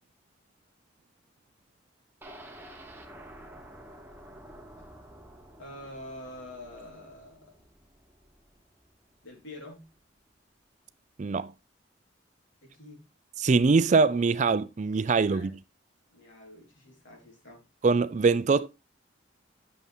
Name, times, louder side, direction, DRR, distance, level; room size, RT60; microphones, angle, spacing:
sound 1, 2.2-10.1 10.4-10.5 10.9-11.0, right 1 dB, 10° right, 1.2 m, -50 dB
voice 1, 5.6-7.5 9.2-9.9 12.6-13.0 15.3-15.5 16.1-17.6, left 1 dB, 80° left, 3.9 m, -46 dB
voice 2, 11.2-11.5 13.4-15.5 17.8-18.7, right 4 dB, 40° right, 0.4 m, -23 dB
8.4 x 6.9 x 3.6 m
head